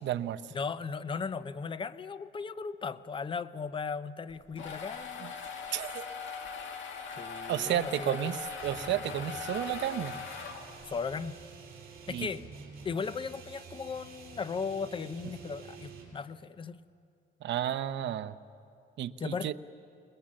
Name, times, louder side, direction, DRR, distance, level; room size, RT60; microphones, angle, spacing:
voice 1, 0.0-0.4 5.7-6.0 7.5-10.2 12.1-12.3 17.4-18.4 19.0-19.5, right 11 dB, 65° right, 12 dB, 0.7 m, -32 dB
voice 2, 0.5-5.4 7.2-8.3 10.9-11.4 12.1-12.5 12.8-16.8 19.2-19.5, left 5 dB, 25° left, 14 dB, 0.5 m, -37 dB
sound 1, 4.3-11.0, left 5 dB, 70° left, 2.3 m, -41 dB
sound 2, 8.6-16.2, right 4 dB, 45° right, 7.1 m, -48 dB
28.5 x 20.0 x 7.5 m, 2.5 s
cardioid pair, 155°, 21 cm